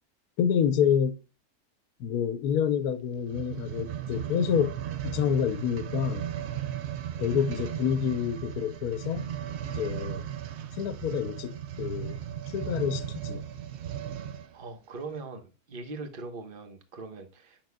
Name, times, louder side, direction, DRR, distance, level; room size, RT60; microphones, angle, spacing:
voice 1, 0.4-1.2 2.0-4.8 5.0-6.3 7.2-9.2 9.7-10.2 10.8-12.2 12.5-13.4, left 8 dB, 85° left, 1.3 m, -28 dB
sound 1, 3.2-14.5 15.2-15.3, right 10 dB, 60° right, 0.7 m, -36 dB
voice 2, 14.5-17.6, right 3 dB, 40° right, 1.3 m, -41 dB
8.9 x 6.2 x 2.3 m
omnidirectional pair, 1.6 m